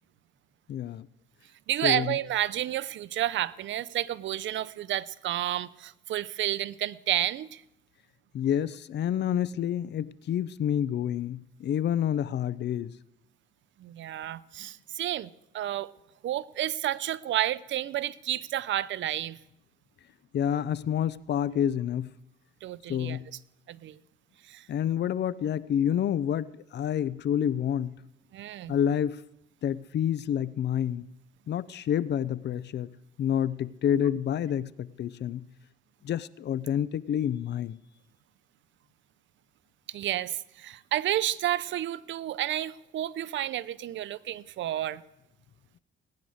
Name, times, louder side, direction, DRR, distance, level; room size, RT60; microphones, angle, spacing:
voice 1, 0.7-1.1 1.8-2.2 8.3-12.9 20.3-22.1 22.9-23.3 24.7-28.0 28.7-29.2 29.6-31.1 31.5-32.9 33.2-35.5 36.0-37.8, left 9 dB, 60° left, 0.6 m, -28 dB
voice 2, 1.7-7.6 13.8-15.3 15.5-15.9 16.2-19.4 22.6-23.2 23.7-24.0 24.5-24.7 28.3-28.7 39.9-45.0, right 12 dB, 70° right, 0.6 m, -31 dB
19.0 x 9.8 x 6.4 m
cardioid pair, 90°, 20 cm